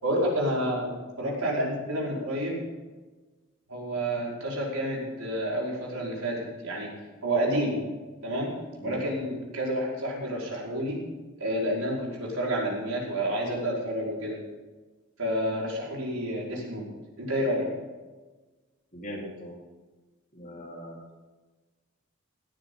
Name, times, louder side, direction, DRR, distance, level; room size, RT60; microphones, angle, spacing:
voice 1, 0.0-0.9 1.2-2.6 3.7-6.9 7.2-7.8 8.2-8.5 8.8-11.0 11.4-14.4 15.2-16.9 17.2-17.7, equal, 90° right, -3 dB, 5.3 m, -29 dB
voice 2, 18.9-19.6 20.3-21.0, equal, 40° left, -3 dB, 4.3 m, -40 dB
17.5 x 13.5 x 4.0 m, 1.2 s
head